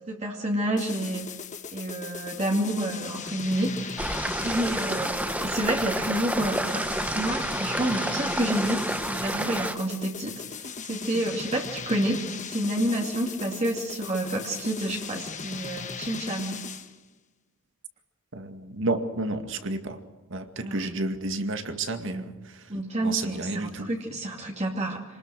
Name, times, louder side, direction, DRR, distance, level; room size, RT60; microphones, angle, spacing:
voice 1, 0.1-1.3 1.7-6.9 7.1-12.2 12.5-16.7 20.6-20.8 22.1-22.3 22.7-25.0, right 1 dB, 35° right, 0 dB, 2.4 m, -29 dB
sound 1, 0.8-17.0, left 5 dB, 35° left, 1.5 m, -38 dB
sound 2, 4.0-9.8, right 1 dB, 5° right, 1.0 m, -29 dB
voice 2, 18.3-20.0 20.3-22.3 23.0-23.9, right 2 dB, 65° right, 7 dB, 2.2 m, -31 dB
28.0 x 20.0 x 6.2 m, 1.1 s
head